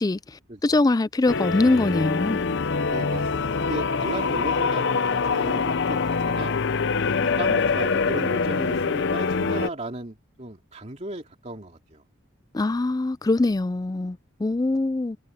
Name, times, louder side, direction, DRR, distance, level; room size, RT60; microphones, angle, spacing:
voice 1, 0.0-2.4 12.5-15.2, left 2 dB, 20° left, 0.3 m, -23 dB
sound 1, 1.3-9.7, left 4 dB, 60° left, 0.6 m, -24 dB
voice 2, 2.9-6.0 6.3-6.6 7.2-12.0, right 1 dB, 35° right, 2.5 m, -35 dB
head